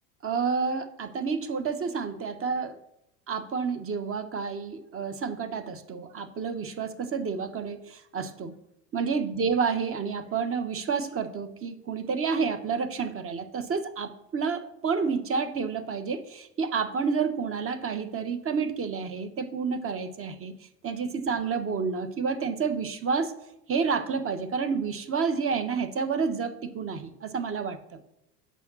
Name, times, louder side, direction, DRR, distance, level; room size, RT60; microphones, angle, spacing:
voice 1, 0.2-2.8 3.3-8.5 8.9-20.5 20.8-23.3 23.7-28.0, right 5 dB, 25° right, 11 dB, 1.2 m, -29 dB
6.9 x 5.9 x 7.0 m, 0.85 s
figure-of-eight pair, 75°, 48 cm